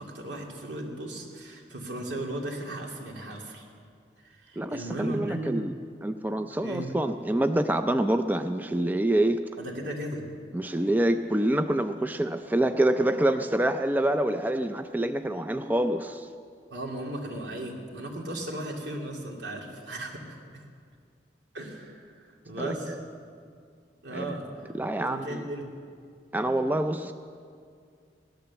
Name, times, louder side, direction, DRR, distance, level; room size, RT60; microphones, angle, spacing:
voice 1, 0.0-3.7 4.2-5.6 6.6-6.9 9.6-10.2 16.7-20.4 21.5-23.0 24.0-24.7 25.0-25.6, right 1 dB, 85° right, 0 dB, 2.5 m, -36 dB
voice 2, 4.6-5.7 6.0-9.4 10.5-16.3 22.6-23.0 24.1-24.4 24.7-25.4 26.3-27.1, right 1 dB, 10° right, 8 dB, 0.4 m, -26 dB
17.0 x 12.0 x 7.1 m, 2.2 s
head